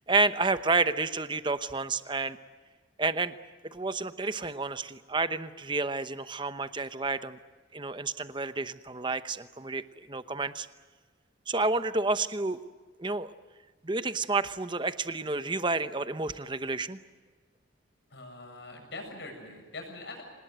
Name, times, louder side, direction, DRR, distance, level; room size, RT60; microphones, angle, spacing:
voice 1, 0.1-2.4 3.0-3.3 3.6-7.4 7.7-10.7 11.5-12.6 13.0-13.3 13.8-17.0, right 3 dB, 25° right, 12 dB, 0.9 m, -30 dB
voice 2, 18.1-20.3, left 2 dB, 60° left, 2 dB, 7.5 m, -43 dB
26.5 x 19.5 x 9.2 m, 1.5 s
head